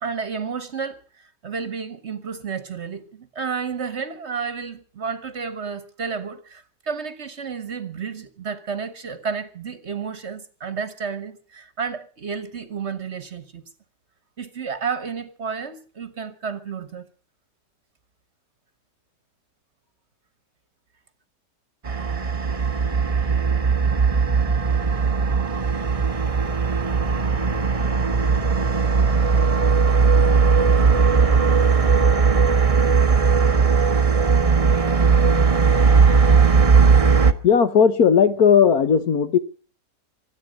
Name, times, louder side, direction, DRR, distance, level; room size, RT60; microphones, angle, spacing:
voice 1, 0.0-13.7 14.4-17.1, right 6 dB, 45° right, 1.4 m, -31 dB
sound 1, 21.9-37.3, right 5 dB, 30° right, 0.7 m, -18 dB
voice 2, 37.4-39.4, left 7 dB, 65° left, 1.5 m, -16 dB
24.5 x 8.8 x 6.4 m
omnidirectional pair, 1.8 m